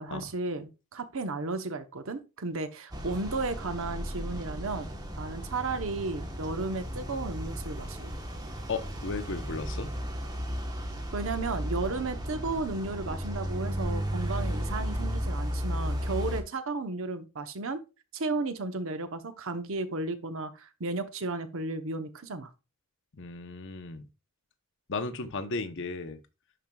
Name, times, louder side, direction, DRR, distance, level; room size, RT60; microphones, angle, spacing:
voice 1, 0.0-8.1 11.1-17.8 18.1-22.5, right 3 dB, 65° right, 0.8 m, -34 dB
sound 1, 2.9-16.4, equal, 20° right, 1.1 m, -34 dB
voice 2, 8.7-9.9 23.1-24.1 24.9-26.2, left 3 dB, 60° left, 0.8 m, -35 dB
11.0 x 4.6 x 2.3 m
head